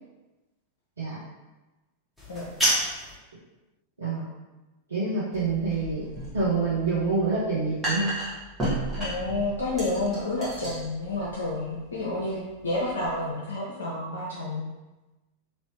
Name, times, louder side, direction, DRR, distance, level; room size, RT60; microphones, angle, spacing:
sound 1, 2.2-3.2, equal, ahead, 1.3 m, -26 dB
voice 1, 4.0-4.3 4.9-6.1 6.3-8.1, right 3 dB, 75° right, -11 dB, 0.9 m, -26 dB
sound 2, 5.3-13.1, right 1 dB, 15° right, 1.4 m, -35 dB
voice 2, 9.0-14.6, left 2 dB, 70° left, -6 dB, 0.6 m, -30 dB
3.1 x 2.9 x 3.0 m, 1.1 s
figure-of-eight pair, 90°, 0 cm